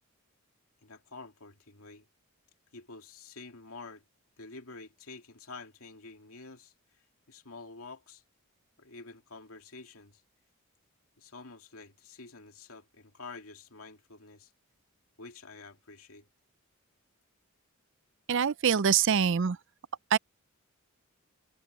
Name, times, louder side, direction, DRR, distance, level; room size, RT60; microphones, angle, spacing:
voice 1, 0.8-2.1 2.7-4.0 4.4-6.7 7.3-8.2 8.8-10.2 11.2-14.5 15.2-16.3, left 3 dB, 75° left, 2.5 m, -48 dB
voice 2, 18.3-19.6 20.1-20.2, right 7 dB, 55° right, 0.5 m, -24 dB
head